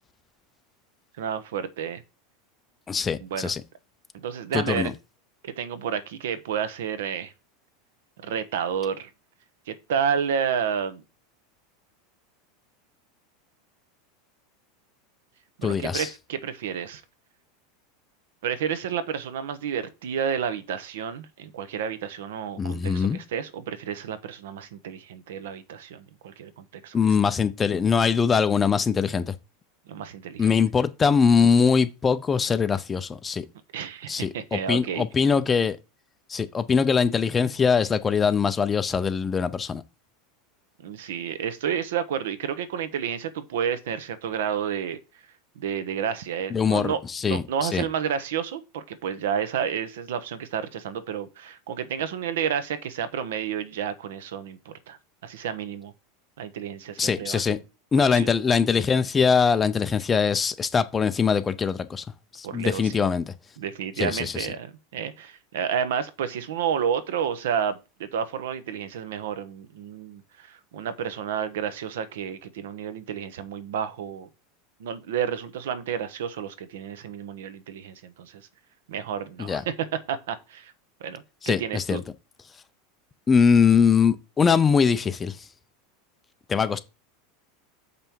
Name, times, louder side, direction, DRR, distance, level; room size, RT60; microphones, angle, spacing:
voice 1, 1.2-2.0 3.2-3.5 4.1-4.9 5.4-7.3 8.2-9.1 9.7-11.0 15.6-17.0 18.4-26.9 29.9-30.5 33.7-35.0 40.8-45.0 45.6-47.0 47.3-55.0 55.2-55.9 56.4-57.6 58.1-58.3 62.4-63.0 63.6-74.3 74.8-78.4 78.9-79.7 80.1-80.7 81.0-82.0, right 8 dB, 85° right, 1.1 m, -30 dB
voice 2, 2.9-3.6 4.5-4.9 15.6-16.1 22.6-23.2 26.9-29.3 30.4-33.4 34.1-35.8 36.3-39.8 46.5-47.9 57.0-57.6 57.9-62.0 62.3-63.3 64.0-64.5 79.4-79.6 81.4-82.0 83.3-85.4 86.5-86.8, left 6 dB, 10° left, 0.4 m, -22 dB
6.9 x 5.5 x 4.5 m
supercardioid pair, 180°, 0 cm